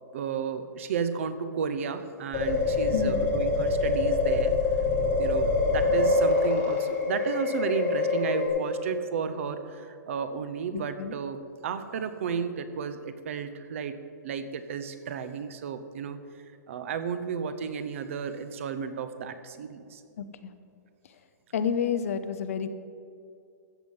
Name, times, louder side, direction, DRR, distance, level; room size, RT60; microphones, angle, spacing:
voice 1, 0.1-4.6 5.1-14.0 14.2-16.2 16.7-20.0, right 6 dB, 45° right, 11 dB, 0.7 m, -33 dB
sound 1, 2.3-8.5, left 3 dB, 20° left, 2.6 m, -25 dB
voice 2, 10.7-11.1 20.2-20.5 21.5-22.7, left 7 dB, 50° left, 11 dB, 0.7 m, -30 dB
14.5 x 8.0 x 5.5 m, 2.4 s
hypercardioid pair, 180°, 10 cm